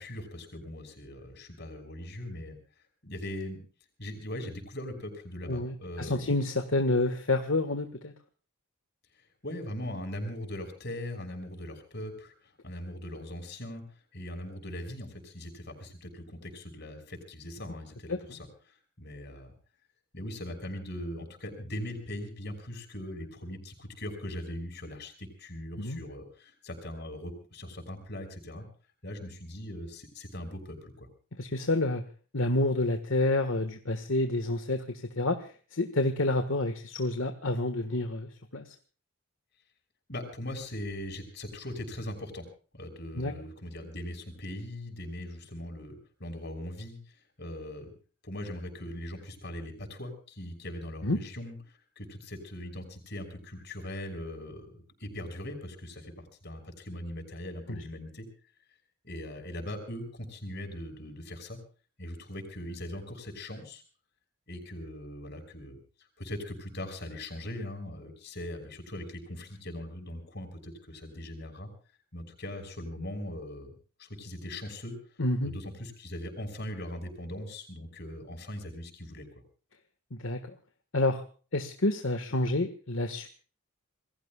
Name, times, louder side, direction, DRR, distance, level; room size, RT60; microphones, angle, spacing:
voice 1, 0.0-2.6 3.0-3.6 4.0-6.3 9.4-13.8 14.1-19.5 20.1-28.7 29.0-31.1 40.1-42.5 42.7-47.9 48.2-58.3 59.0-61.6 62.0-63.8 64.5-71.7 72.1-75.0 75.4-79.3, left 1 dB, 50° left, 5 dB, 6.0 m, -40 dB
voice 2, 5.5-8.1 18.1-18.2 25.8-26.0 31.4-32.0 32.3-38.7 43.1-43.3 51.0-51.2 57.7-57.8 75.2-75.5 80.2-80.5 80.9-81.2 81.5-83.3, left 2 dB, 65° left, 7 dB, 1.6 m, -29 dB
28.0 x 21.5 x 2.4 m, 0.40 s
head